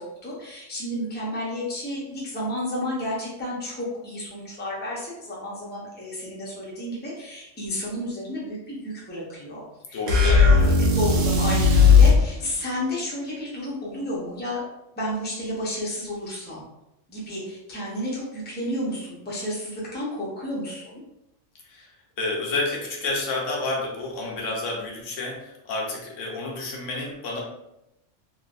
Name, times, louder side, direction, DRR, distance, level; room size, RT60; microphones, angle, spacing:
voice 1, 0.0-14.6 15.0-16.6 17.1-21.0, left 1 dB, 10° left, -6 dB, 0.6 m, -31 dB
voice 2, 9.9-10.6 21.6-21.9 22.2-27.4, left 2 dB, 75° left, -1 dB, 1.0 m, -30 dB
sound 1, 10.1-12.2, left 4 dB, 80° right, 1.0 m, -16 dB
3.3 x 2.3 x 2.4 m, 0.87 s
omnidirectional pair, 1.3 m